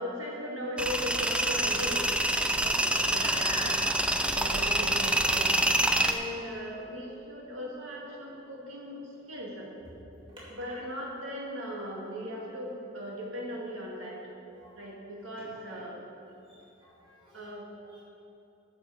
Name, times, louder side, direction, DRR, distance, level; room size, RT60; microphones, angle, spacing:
voice 1, 0.0-2.0 2.4-3.8 4.3-5.5 6.0-9.7 10.5-14.2 14.7-16.0 17.3-17.7, equal, 85° right, -3 dB, 2.0 m, -38 dB
Tools, 0.8-6.1, right 1 dB, 5° right, 0.4 m, -26 dB
voice 2, 16.5-17.5 17.8-18.0, right 1 dB, 25° right, -8 dB, 2.2 m, -52 dB
8.9 x 6.0 x 6.9 m, 2.8 s
head